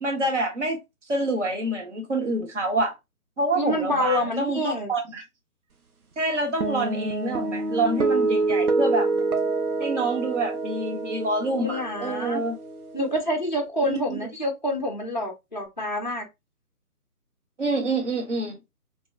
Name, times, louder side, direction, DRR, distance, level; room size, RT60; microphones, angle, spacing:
voice 1, 0.0-0.8 1.1-2.9 3.4-5.2 6.2-9.1 9.8-12.6 13.8-14.2 17.6-18.6, right 2 dB, 50° right, 1.0 m, -27 dB
voice 2, 3.5-4.9 11.5-12.4 12.9-16.3, left 1 dB, 35° left, 0.4 m, -27 dB
sound 1, 6.6-13.2, right 3 dB, 70° right, 0.7 m, -27 dB
2.8 x 2.0 x 2.4 m
figure-of-eight pair, 145°, 45 cm